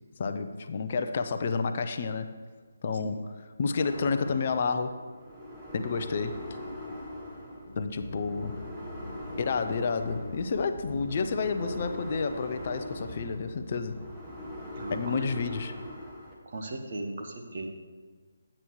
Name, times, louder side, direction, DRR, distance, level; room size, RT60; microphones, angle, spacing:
voice 1, 0.2-2.3 2.8-3.2 3.6-5.0 5.7-6.4 7.8-8.6 9.4-14.0 14.9-15.8, left 4 dB, 45° left, 9 dB, 0.6 m, -30 dB
sound 1, 3.8-16.3, equal, 10° right, 1.7 m, -42 dB
sound 2, 7.6-15.9, left 2 dB, 65° left, 1.3 m, -46 dB
voice 2, 14.8-15.1 16.4-17.7, right 2 dB, 50° right, 2 dB, 1.3 m, -37 dB
11.0 x 8.7 x 3.1 m, 1.5 s
figure-of-eight pair, 150°, 0 cm